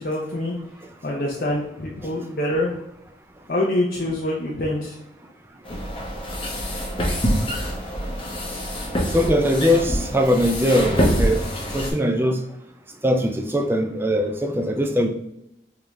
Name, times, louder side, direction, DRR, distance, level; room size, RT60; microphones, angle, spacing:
voice 1, 0.0-0.5 1.0-2.7 3.5-4.9, left 1 dB, 50° left, 0.6 m, -25 dB
sound 1, 5.6-11.9, equal, 30° left, 0.9 m, -25 dB
voice 2, 9.1-11.4 11.7-12.4 13.0-15.1, equal, 10° right, 0.3 m, -21 dB
3.8 x 3.4 x 3.0 m
head